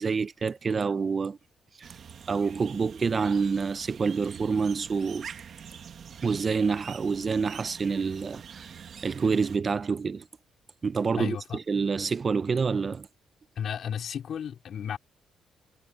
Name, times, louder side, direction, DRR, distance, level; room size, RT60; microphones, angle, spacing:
voice 1, 0.0-1.4 1.8-1.9 2.3-5.3 6.2-8.7 9.0-10.2 10.8-13.1, right 5 dB, 40° right, 0.7 m, -27 dB
sound 1, 1.8-9.6, right 7 dB, 55° right, 1.6 m, -45 dB
voice 2, 11.2-11.6 13.6-15.0, left 8 dB, 60° left, 4.3 m, -33 dB
cardioid pair, 90°, 0 cm